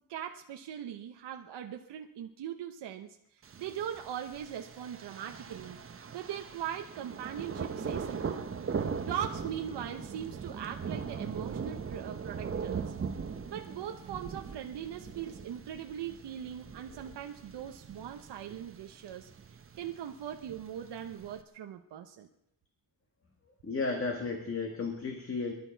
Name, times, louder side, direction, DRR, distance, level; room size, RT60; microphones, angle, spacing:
voice 1, 0.1-3.2 3.6-5.8 6.1-8.5 9.0-12.9 13.5-19.3 19.8-22.3, right 9 dB, 85° right, 5 dB, 1.0 m, -40 dB
Thunder, 3.4-21.4, right 6 dB, 30° right, 0.9 m, -40 dB
voice 2, 23.6-25.5, left 4 dB, 35° left, 3 dB, 1.8 m, -33 dB
24.5 x 11.5 x 4.6 m, 0.80 s
wide cardioid pair, 170°, 40 cm